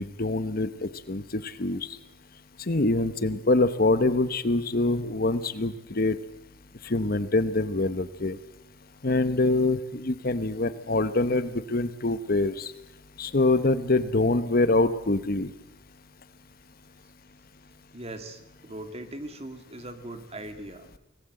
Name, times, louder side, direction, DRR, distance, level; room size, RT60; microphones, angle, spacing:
voice 1, 0.0-1.9 2.7-6.2 6.8-8.4 9.0-12.7 13.2-15.5, left 2 dB, 50° left, 13 dB, 1.1 m, -25 dB
voice 2, 17.9-20.9, right 1 dB, 35° right, 8 dB, 2.1 m, -40 dB
25.5 x 19.0 x 7.8 m, 0.90 s
head